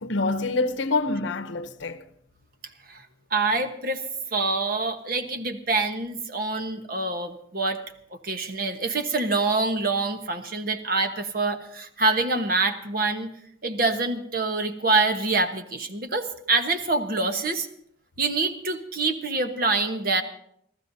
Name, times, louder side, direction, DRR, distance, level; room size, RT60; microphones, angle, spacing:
voice 1, 0.0-2.1, left 3 dB, 70° left, 0.8 m, -26 dB
voice 2, 3.3-4.0 4.3-7.8 8.1-13.3 13.6-17.7 18.2-20.2, right 3 dB, 50° right, 1.2 m, -25 dB
29.0 x 14.0 x 2.7 m
head